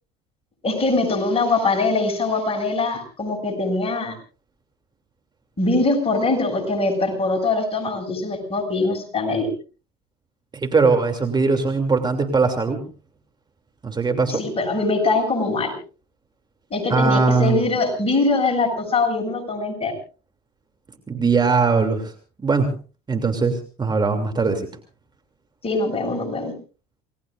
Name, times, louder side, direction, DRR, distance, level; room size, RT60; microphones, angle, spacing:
voice 1, 0.6-4.2 5.6-9.5 14.4-15.7 16.7-19.9 25.6-26.5, left 3 dB, 30° left, 3 dB, 7.8 m, -22 dB
voice 2, 10.5-12.8 13.8-14.4 16.9-17.6 21.1-22.1 22.4-22.7 23.1-24.6, right 4 dB, 20° right, 5 dB, 2.9 m, -20 dB
29.0 x 18.5 x 2.6 m, 0.36 s
hypercardioid pair, 80°, 19 cm